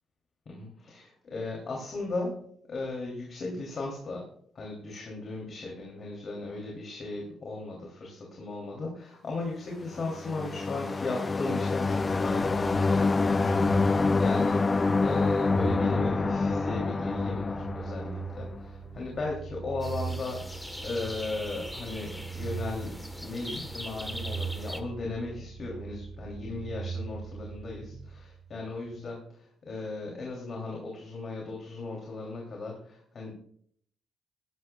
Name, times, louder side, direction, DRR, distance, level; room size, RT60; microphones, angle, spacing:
voice 1, 0.5-4.3 4.5-20.4 20.8-33.3, left 3 dB, 45° left, -1 dB, 3.0 m, -37 dB
sound 1, 9.9-18.6, left 3 dB, 25° left, 0.3 m, -27 dB
sound 2, 11.9-28.7, right 5 dB, 60° right, 1.5 m, -40 dB
sound 3, 19.8-24.8, left 1 dB, 10° left, 1.2 m, -41 dB
15.5 x 11.5 x 2.3 m, 0.64 s
cardioid pair, 90°, 0 cm